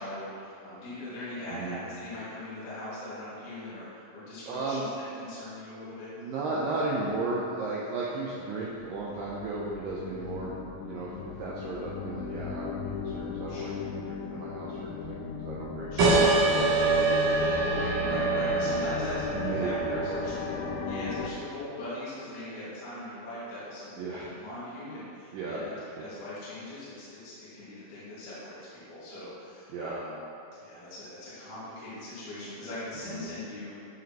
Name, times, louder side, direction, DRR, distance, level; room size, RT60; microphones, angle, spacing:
voice 1, 0.0-4.9 5.1-6.1 13.5-13.8 15.9-16.1 16.7-17.0 17.2-20.5 20.8-30.2 30.5-33.8, left 1 dB, 55° left, -11 dB, 3.2 m, -40 dB
voice 2, 1.5-1.8 4.5-4.8 6.2-13.7 14.1-15.9 16.5-16.7 19.3-20.2 24.0-24.3 25.3-26.1 29.7-30.0 33.1-33.3, right 3 dB, 85° right, -5 dB, 1.9 m, -35 dB
sound 1, 8.7-21.3, left 5 dB, 90° left, 2.1 m, -36 dB
sound 2, 16.0-21.2, right 3 dB, 60° right, 1.8 m, -26 dB
12.5 x 5.2 x 3.0 m, 2.8 s
omnidirectional pair, 4.9 m